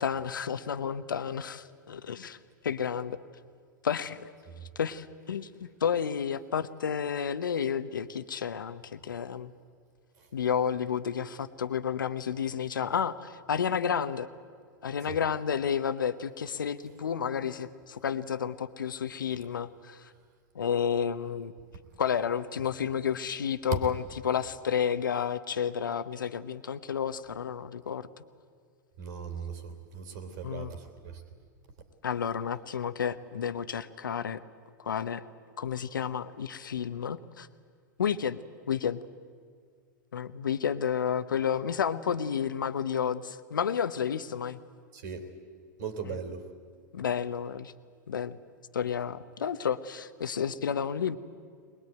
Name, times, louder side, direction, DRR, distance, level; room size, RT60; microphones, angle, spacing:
voice 1, 0.0-2.4 2.6-3.2 3.8-4.3 4.7-9.5 10.3-14.3 14.8-20.1 20.5-21.5 22.0-28.2 30.4-30.7 32.0-34.4 34.8-35.2 35.6-37.5 38.0-38.4 38.7-39.0 40.1-44.6 46.0-46.2 46.9-47.7 48.1-48.4 48.7-51.2, left 7 dB, 80° left, 12 dB, 0.9 m, -31 dB
voice 2, 29.0-31.2 44.9-45.3 45.8-46.4, right 6 dB, 60° right, 8 dB, 3.4 m, -39 dB
21.5 x 20.5 x 9.3 m, 2.1 s
hypercardioid pair, 100°, 11 cm